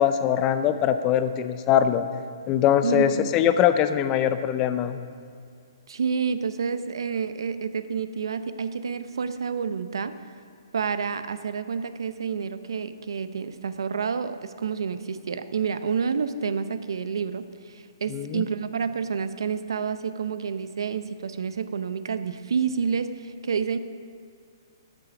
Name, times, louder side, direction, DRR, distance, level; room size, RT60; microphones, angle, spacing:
voice 1, 0.0-2.1 2.5-5.0 18.1-18.4, left 10 dB, 20° left, 10 dB, 0.5 m, -22 dB
voice 2, 2.8-3.4 5.9-10.1 10.7-23.8, right 6 dB, 85° right, 12 dB, 0.7 m, -29 dB
13.5 x 7.6 x 5.0 m, 2.2 s
hypercardioid pair, 165°, 2 cm